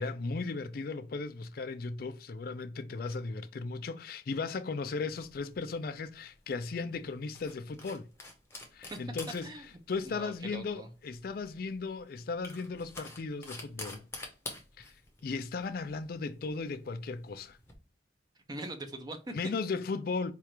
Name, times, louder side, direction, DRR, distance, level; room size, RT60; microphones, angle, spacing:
voice 1, 0.0-8.1 8.7-9.5 9.9-14.1 14.8-17.6 19.3-20.3, left 4 dB, 55° left, 0.4 m, -36 dB
sound 1, 5.1-17.7, left 2 dB, 15° left, 0.7 m, -49 dB
voice 2, 9.4-10.9 18.5-19.3, right 2 dB, 20° right, 0.5 m, -42 dB
4.6 x 2.4 x 2.9 m
head